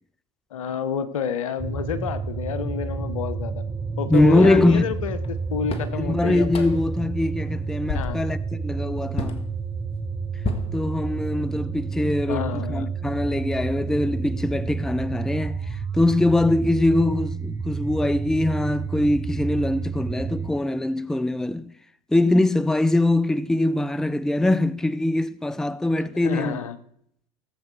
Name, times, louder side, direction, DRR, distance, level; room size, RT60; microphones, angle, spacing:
voice 1, 0.5-3.6 4.0-6.7 7.9-8.2 12.3-12.9 26.2-26.8, left 7 dB, 75° left, 0.9 m, -29 dB
sound 1, 1.6-20.5, right 4 dB, 15° right, 0.9 m, -30 dB
voice 2, 4.0-4.9 6.0-9.4 10.7-21.7 22.1-26.6, left 1 dB, 5° left, 0.5 m, -22 dB
sound 2, 4.1-4.4 5.2-5.3 5.7-6.0 6.5-6.9 7.4-7.6 7.9-8.3 9.2-9.4 10.4-11.4, left 3 dB, 35° left, 1.7 m, -31 dB
17.5 x 7.6 x 4.7 m
figure-of-eight pair, 70°, 17 cm